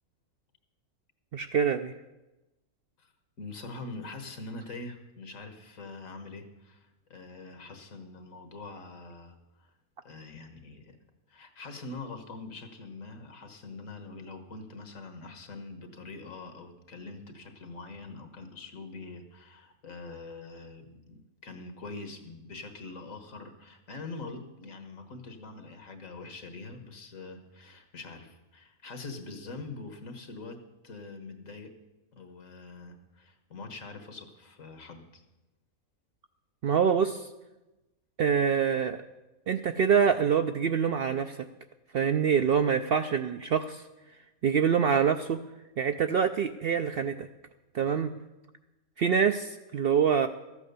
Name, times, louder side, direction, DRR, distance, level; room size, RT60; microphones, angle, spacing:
voice 1, 1.3-1.9 36.6-37.3 38.2-39.0 39.5-41.5 41.9-43.8 44.4-45.4 45.8-47.3 47.7-48.1 49.0-50.3, right 7 dB, 65° right, 8 dB, 0.6 m, -25 dB
voice 2, 3.4-9.7 10.0-11.0 11.3-30.6 30.8-31.7 32.1-35.2, left 3 dB, 75° left, 7 dB, 1.8 m, -44 dB
13.5 x 8.5 x 6.8 m, 1.0 s
omnidirectional pair, 1.4 m